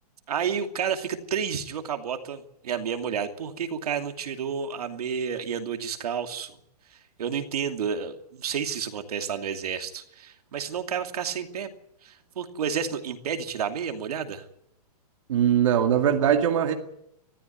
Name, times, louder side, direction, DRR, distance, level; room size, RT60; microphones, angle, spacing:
voice 1, 0.3-6.6 6.9-11.7 12.0-14.5, right 7 dB, 70° right, 6 dB, 2.7 m, -31 dB
voice 2, 15.3-16.7, right 9 dB, 50° right, 4 dB, 2.2 m, -21 dB
21.0 x 14.5 x 9.5 m, 0.78 s
hypercardioid pair, 180°, 20 cm